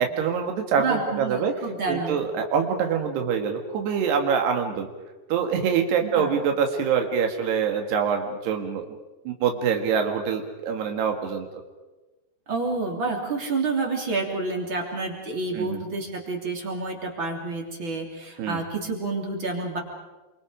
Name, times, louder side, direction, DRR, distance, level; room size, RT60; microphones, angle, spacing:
voice 1, 0.0-1.5 1.9-4.9 5.3-8.9 9.3-11.5 15.5-15.8 18.4-18.6, right 7 dB, 85° right, 4 dB, 4.0 m, -25 dB
voice 2, 0.8-2.2 6.0-6.3 12.5-19.8, right 3 dB, 30° right, 1 dB, 3.6 m, -29 dB
28.0 x 25.5 x 5.1 m, 1.2 s
omnidirectional pair, 4.6 m